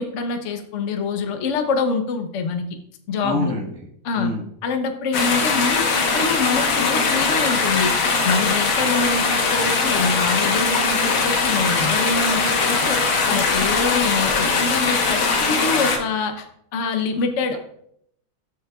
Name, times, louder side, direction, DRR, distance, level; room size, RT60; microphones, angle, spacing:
voice 1, 0.0-2.6 3.1-3.5 4.0-4.3 4.6-5.9 6.1-7.9 8.2-13.0 13.3-16.5 16.7-17.6, left 4 dB, 60° left, 5 dB, 0.8 m, -25 dB
voice 2, 3.2-3.9 4.1-4.4, left 1 dB, 5° left, -1 dB, 0.9 m, -27 dB
sound 1, 5.1-16.0, left 4 dB, 75° left, 2.0 m, -20 dB
13.5 x 6.4 x 2.3 m, 0.71 s
omnidirectional pair, 2.3 m